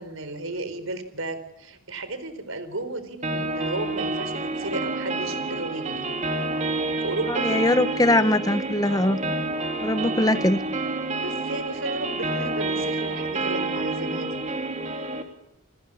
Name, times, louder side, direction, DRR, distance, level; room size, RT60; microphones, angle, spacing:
voice 1, 0.0-6.1 7.0-7.6 8.9-9.2 11.2-14.4, right 2 dB, 70° right, 12 dB, 4.3 m, -34 dB
sound 1, 3.2-15.2, right 2 dB, 35° right, 3.1 m, -29 dB
voice 2, 7.3-9.2 9.8-10.6, left 1 dB, 15° left, 12 dB, 1.0 m, -21 dB
29.5 x 19.5 x 8.8 m, 0.77 s
head